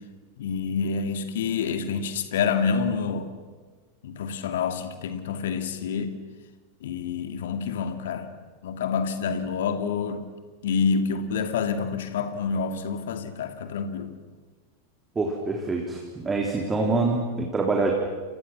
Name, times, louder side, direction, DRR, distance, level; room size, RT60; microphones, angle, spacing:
voice 1, 0.4-3.3 4.0-6.1 6.8-8.3 8.6-10.2 10.6-14.1, left 6 dB, 60° left, 2.2 m, -27 dB
voice 2, 15.2-17.9, right 3 dB, 15° right, 3.6 m, -25 dB
29.5 x 28.0 x 6.1 m
figure-of-eight pair, 90°, 0 cm